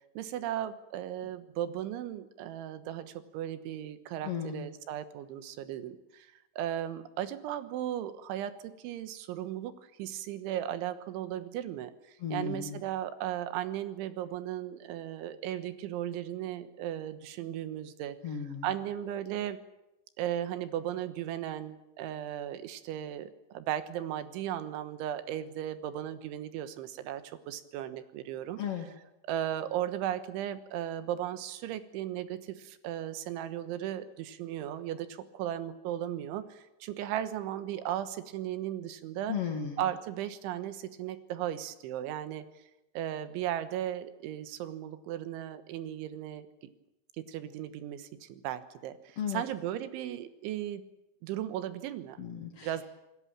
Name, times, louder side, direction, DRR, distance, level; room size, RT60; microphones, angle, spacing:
voice 1, 0.2-18.2 18.6-19.6 20.2-28.6 29.3-39.4 39.8-42.5 43.0-46.7 47.2-50.9 51.2-52.2 52.6-52.8, right 11 dB, 80° right, 11 dB, 3.6 m, -36 dB
voice 2, 4.2-4.7 12.2-12.8 18.2-18.7 28.6-28.9 39.3-39.8 49.2-49.4 52.2-52.8, left 7 dB, 50° left, 2 dB, 1.9 m, -35 dB
28.0 x 19.0 x 7.4 m, 0.93 s
omnidirectional pair, 5.5 m